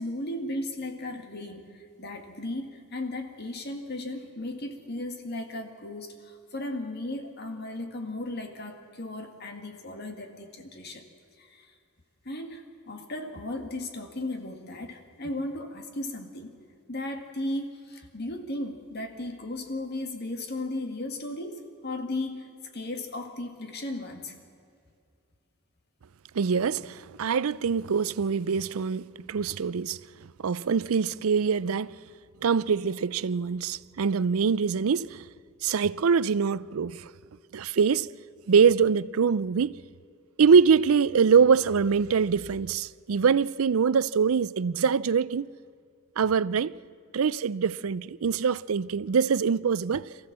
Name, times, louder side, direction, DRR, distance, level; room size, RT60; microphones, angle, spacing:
voice 1, 0.0-11.1 11.4-11.7 12.3-16.5 16.9-22.5 22.7-24.4, left 1 dB, 50° left, 1.9 m, -36 dB
voice 2, 26.3-30.0 30.4-32.0 32.4-35.2 35.6-37.1 37.5-38.1 38.5-39.8 40.4-45.5 46.2-46.7 47.1-50.3, right 6 dB, 85° right, 0.5 m, -24 dB
24.0 x 15.0 x 7.4 m
head